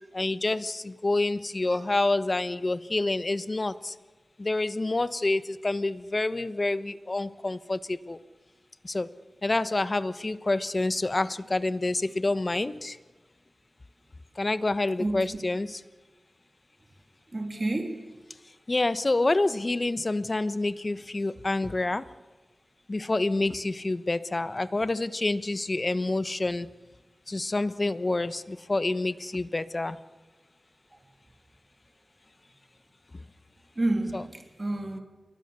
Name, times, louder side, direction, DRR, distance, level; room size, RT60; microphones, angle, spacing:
voice 1, 0.1-3.9 4.4-8.2 8.8-9.1 9.4-13.0 14.4-15.8 18.7-22.0 22.9-26.7 27.3-30.0 34.1-34.2, left 2 dB, 40° left, 1.2 m, -28 dB
voice 2, 15.0-15.3 17.3-18.0 33.8-35.0, right 2 dB, 40° right, 3.1 m, -30 dB
28.5 x 22.0 x 7.0 m
cardioid pair, 45°, 0 cm